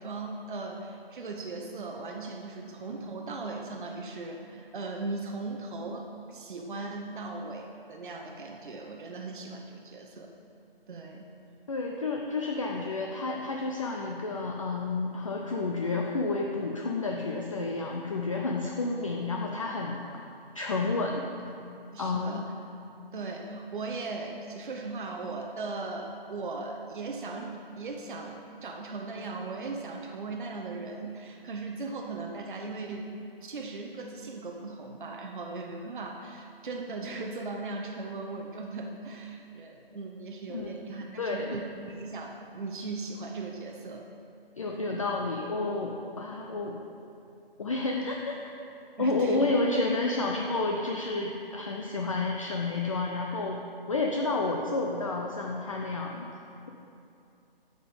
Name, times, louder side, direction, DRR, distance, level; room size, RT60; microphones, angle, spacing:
voice 1, 0.0-10.3 10.9-11.3 21.9-22.5 23.1-33.1 33.4-44.0 46.5-46.7 49.0-49.5, right 3 dB, 55° right, 1 dB, 0.8 m, -38 dB
voice 2, 11.7-20.0 20.5-21.2 22.0-22.4 40.5-41.6 44.6-46.8 47.6-48.5 49.0-53.6 53.9-56.3, left 3 dB, 35° left, 0 dB, 0.5 m, -30 dB
8.5 x 5.1 x 5.3 m, 2.6 s
figure-of-eight pair, 145°, 30 cm